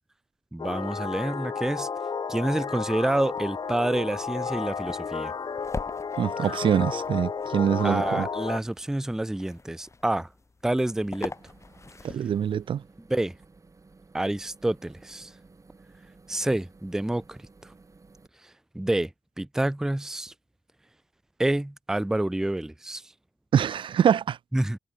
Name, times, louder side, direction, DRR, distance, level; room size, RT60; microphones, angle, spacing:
voice 1, 0.5-1.9 2.3-5.3 7.8-10.3 10.6-11.3 13.1-13.3 14.1-15.3 16.3-17.7 18.7-19.1 19.4-20.3 21.4-23.0 24.5-24.8, right 1 dB, 5° right, 0.3 m, -28 dB
sound 1, 0.6-8.6, left 5 dB, 50° left, 0.9 m, -32 dB
sound 2, 3.0-12.6, left 3 dB, 35° left, 1.2 m, -43 dB
voice 2, 6.2-8.3 12.0-12.8 23.5-24.4, right 9 dB, 70° right, 0.4 m, -24 dB
sound 3, 10.9-18.3, right 3 dB, 35° right, 4.2 m, -55 dB
cardioid pair, 65°, 9 cm